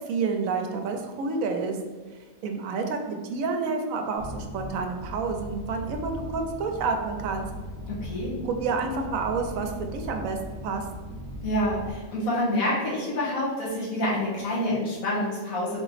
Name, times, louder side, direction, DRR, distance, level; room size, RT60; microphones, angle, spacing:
voice 1, 0.1-1.8 2.4-7.4 8.4-10.4 10.6-10.8, right 4 dB, 70° right, 4 dB, 1.0 m, -29 dB
sound 1, 4.2-11.9, equal, 35° right, 1.4 m, -38 dB
voice 2, 7.9-8.3 11.4-15.8, left 1 dB, 80° left, -6 dB, 1.7 m, -27 dB
4.2 x 2.9 x 4.1 m, 1.4 s
omnidirectional pair, 1.5 m